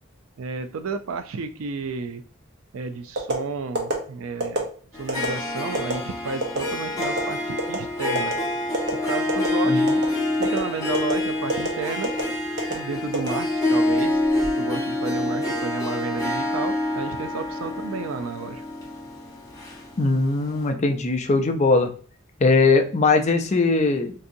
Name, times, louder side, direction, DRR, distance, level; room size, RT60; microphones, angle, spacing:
voice 1, 0.4-2.2 2.7-4.7 5.0-8.3 9.1-9.9 10.4-12.1 12.7-14.2 14.6-18.6, right 4 dB, 90° right, 0.4 m, -32 dB
sound 1, 3.2-3.4 3.8-3.9 4.4-4.6 5.1-5.3 5.7-5.9 6.4-6.6 7.0-7.2 7.6-7.8 8.2-8.3 8.7-8.9 9.3-9.5 9.9-10.1 10.4-10.6 10.9-11.1 11.5-11.7 12.0-12.2 12.6-12.7 13.1-13.8 14.2-14.5, right 1 dB, 55° right, 0.9 m, -26 dB
Harp, 4.9-20.3, left 1 dB, 15° left, 0.8 m, -26 dB
voice 2, 9.7-10.0 20.0-21.9 22.4-24.1, left 3 dB, 35° left, 0.4 m, -20 dB
3.9 x 2.6 x 2.6 m
head